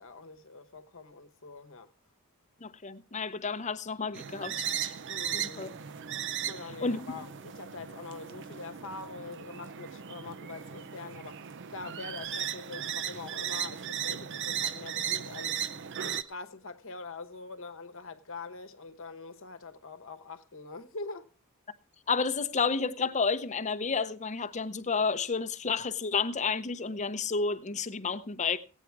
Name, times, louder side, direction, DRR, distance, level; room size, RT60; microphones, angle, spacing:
voice 1, 0.0-1.9 5.1-5.8 6.4-15.6 16.0-21.3, left 3 dB, 60° left, 1.1 m, -44 dB
voice 2, 2.6-4.9 5.3-5.7 6.8-7.2 22.1-28.6, left 5 dB, 30° left, 0.8 m, -31 dB
sound 1, 4.1-16.2, right 9 dB, 55° right, 0.6 m, -36 dB
16.5 x 9.0 x 4.7 m
head